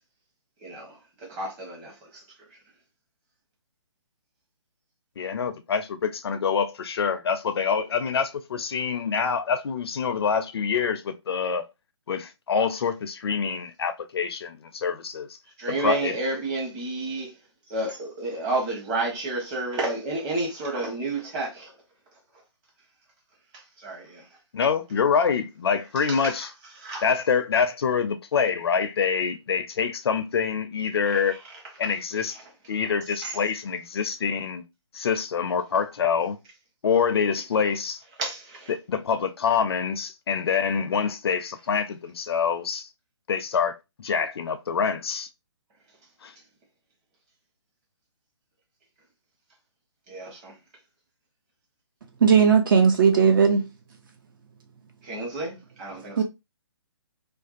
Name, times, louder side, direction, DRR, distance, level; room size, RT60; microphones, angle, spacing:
voice 1, 0.6-2.2 15.6-17.3 17.7-21.7 23.8-24.2 26.1-26.5 26.8-27.0 31.1-31.4 33.2-33.4 38.2-38.7 50.1-50.5 55.0-56.2, right 2 dB, 20° right, 0.9 m, -31 dB
voice 2, 5.2-11.6 12.1-15.3 15.7-16.1 24.5-26.5 27.0-31.3 31.8-32.4 32.7-34.6 34.9-36.4 36.8-38.0 38.7-42.9 43.3-45.3 46.2-46.3, left 6 dB, 55° left, 0.4 m, -26 dB
voice 3, 52.2-53.6 56.1-56.2, right 6 dB, 45° right, 0.4 m, -17 dB
2.5 x 2.3 x 2.4 m
figure-of-eight pair, 140°, 16 cm